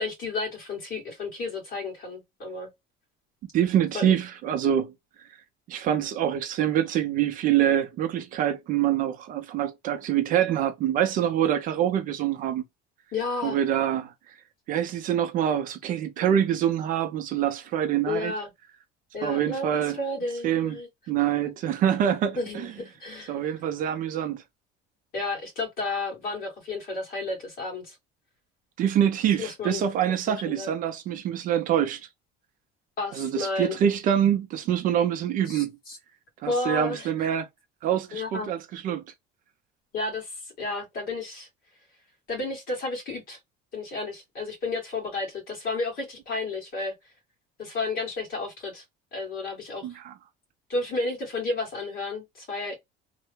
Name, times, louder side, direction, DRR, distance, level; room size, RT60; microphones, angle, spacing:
voice 1, 0.0-2.7 3.9-4.2 13.1-13.6 18.1-18.5 19.1-20.9 22.4-23.4 25.1-28.0 29.4-30.7 33.0-33.8 35.5-36.0 36.4-37.1 38.1-38.5 39.9-41.5 42.3-43.4 43.7-46.9 47.6-48.8 49.1-49.9 50.7-52.7, left 3 dB, 45° left, 1.8 m, -32 dB
voice 2, 3.5-4.9 5.7-12.6 13.4-14.1 14.7-18.3 19.2-20.0 20.4-20.8 21.1-22.7 23.3-24.4 28.8-32.0 33.1-35.7 36.4-37.5 37.8-39.0 49.8-50.1, right 10 dB, 40° right, 0.4 m, -25 dB
3.1 x 2.1 x 3.2 m
cardioid pair, 170°, 21 cm